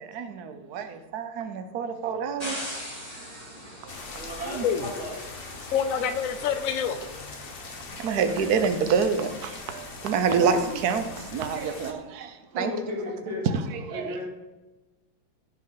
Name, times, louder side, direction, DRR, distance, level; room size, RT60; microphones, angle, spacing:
voice 1, 0.0-2.7 3.1-3.4 3.8-3.9 4.4-4.7 7.6-12.7 13.4-14.2, right 6 dB, 60° right, 8 dB, 1.3 m, -28 dB
sound 1, 2.4-7.5, equal, 15° right, 3.3 m, -41 dB
sound 2, 3.9-11.9, left 4 dB, 40° left, 0.9 m, -41 dB
voice 2, 4.1-5.2 10.3-10.8 12.5-13.4 13.9-14.3, left 1 dB, 85° right, -4 dB, 3.8 m, -33 dB
voice 3, 5.7-7.0, left 7 dB, 80° left, 8 dB, 0.7 m, -26 dB
15.5 x 6.0 x 4.0 m, 1.1 s
omnidirectional pair, 2.2 m